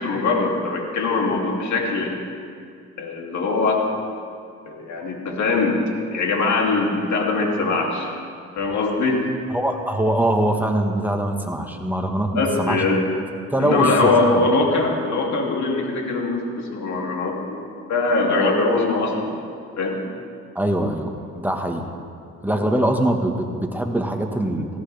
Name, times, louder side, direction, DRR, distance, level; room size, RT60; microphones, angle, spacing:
voice 1, 0.0-2.1 3.0-3.8 4.7-5.8 6.1-8.1 8.6-9.3 12.3-13.0 13.6-19.3 19.8-20.0, left 3 dB, 70° left, -1 dB, 2.9 m, -22 dB
voice 2, 9.5-12.8 13.5-13.9 14.2-14.5 20.5-21.9 22.4-24.7, right 1 dB, 5° right, 3 dB, 1.5 m, -23 dB
18.0 x 16.0 x 3.5 m, 2.3 s
cardioid pair, 90°, 30 cm